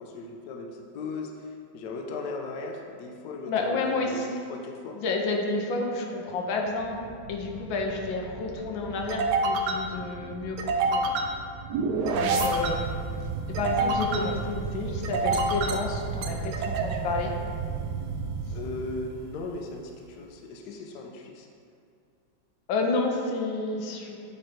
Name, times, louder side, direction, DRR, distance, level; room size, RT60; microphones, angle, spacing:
voice 1, 0.0-5.0 12.3-12.5 18.5-21.5, left 3 dB, 70° left, 2 dB, 1.1 m, -38 dB
voice 2, 3.5-4.4 4.9-11.1 12.1-12.9 13.5-17.3 22.7-24.2, left 3 dB, 85° left, 1 dB, 1.5 m, -30 dB
sound 1, 6.8-19.5, right 3 dB, 75° right, 1.0 m, -29 dB
8.6 x 3.2 x 4.4 m, 2.3 s
omnidirectional pair, 2.2 m